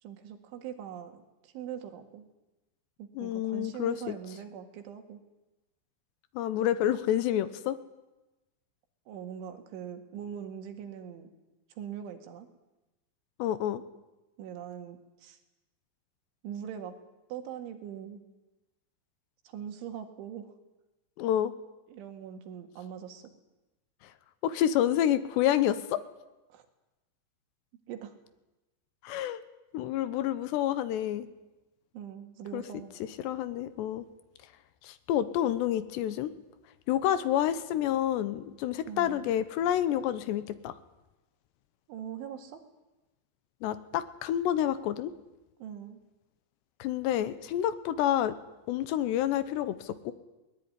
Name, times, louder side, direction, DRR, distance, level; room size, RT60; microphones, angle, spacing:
voice 1, 0.0-2.3 3.0-5.2 9.1-11.3 11.8-12.5 14.4-15.4 16.4-16.9 17.3-18.2 19.5-20.5 21.9-23.2 26.5-26.7 27.9-28.1 31.9-32.9 38.9-39.3 41.9-42.6 45.6-46.0, right 9 dB, 85° right, 6 dB, 4.4 m, -42 dB
voice 2, 3.2-4.1 6.3-7.8 13.4-13.8 21.2-21.5 24.0-24.1 24.4-26.0 29.0-29.4 29.7-31.3 32.5-32.6 33.2-34.1 34.8-36.3 36.9-40.7 43.6-45.1 46.8-48.4 48.7-50.1, left 11 dB, 75° left, 13 dB, 3.0 m, -28 dB
21.0 x 19.5 x 9.7 m, 1.0 s
omnidirectional pair, 5.3 m